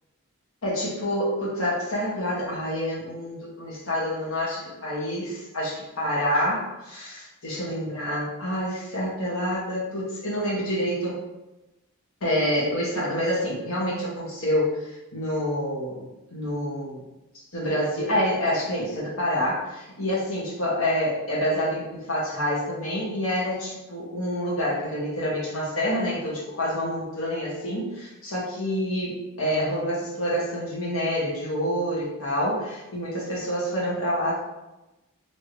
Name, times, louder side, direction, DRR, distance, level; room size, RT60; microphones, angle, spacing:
voice 1, 0.6-11.2 12.2-16.0 16.3-17.0 17.5-34.4, equal, 85° left, -6 dB, 1.5 m, -27 dB
3.4 x 2.9 x 2.9 m, 0.97 s
head